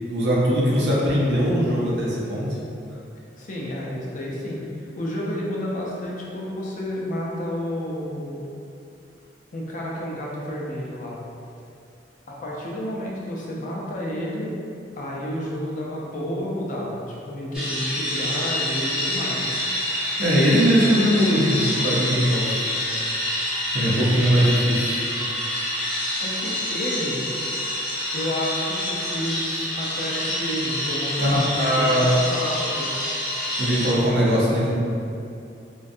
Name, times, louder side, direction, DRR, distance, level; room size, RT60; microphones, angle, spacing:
voice 1, 0.1-2.6 20.2-22.6 23.7-25.0 31.2-32.2 33.6-34.8, equal, 70° right, -6 dB, 0.6 m, -20 dB
voice 2, 3.4-8.5 9.5-11.2 12.3-14.5 15.0-19.5 24.4-24.5 26.2-27.3 28.1-32.9 34.2-34.6, left 1 dB, 45° left, -4 dB, 0.4 m, -30 dB
sound 1, 17.5-33.9, left 1 dB, 5° right, 0.6 m, -27 dB
2.5 x 2.2 x 2.6 m, 2.6 s
head